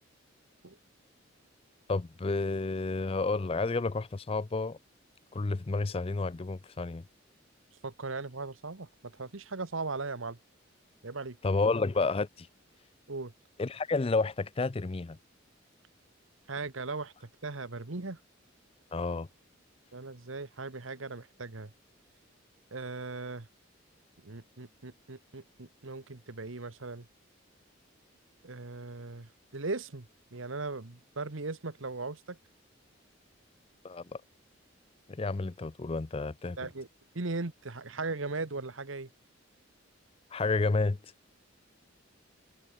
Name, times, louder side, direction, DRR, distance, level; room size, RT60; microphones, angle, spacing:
voice 1, 1.9-4.8 5.3-7.0 11.4-12.5 13.6-15.2 18.9-19.3 33.8-34.2 35.1-36.6 40.3-41.0, left 3 dB, 30° left, 0.4 m, -30 dB
voice 2, 7.8-10.4 11.0-11.4 13.1-13.3 16.5-18.2 19.9-21.7 22.7-23.5 24.2-27.1 28.4-30.1 30.3-32.4 36.6-36.9 37.1-39.1, right 3 dB, 80° right, 1.4 m, -38 dB
head